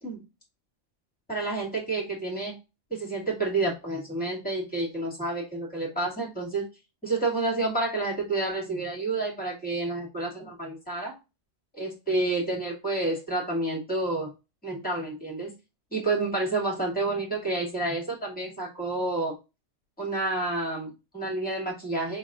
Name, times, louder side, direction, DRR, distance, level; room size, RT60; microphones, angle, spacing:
voice 1, 1.3-2.6 2.9-6.7 7.0-11.2 11.7-14.3 14.6-15.5 15.9-19.4 20.0-22.2, right 2 dB, 5° left, -2 dB, 2.4 m, -29 dB
4.7 x 4.0 x 2.4 m, 0.27 s
omnidirectional pair, 1.2 m